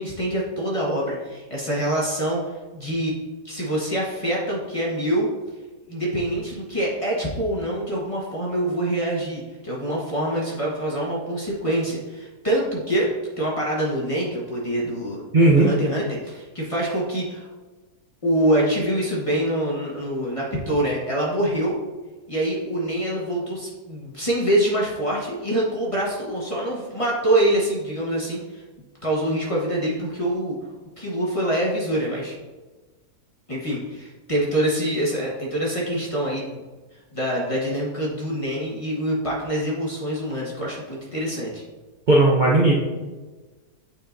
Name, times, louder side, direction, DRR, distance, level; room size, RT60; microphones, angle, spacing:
voice 1, 0.0-3.2 3.4-5.3 5.9-13.1 13.4-15.2 15.6-17.5 18.2-21.8 22.3-28.6 29.0-30.6 31.0-32.3 33.5-36.6 37.1-41.6, right 1 dB, 20° left, -5 dB, 1.1 m, -25 dB
voice 2, 15.3-15.7 42.1-42.7, right 2 dB, 40° right, -3 dB, 0.7 m, -15 dB
8.6 x 4.5 x 2.6 m, 1.2 s
omnidirectional pair, 1.8 m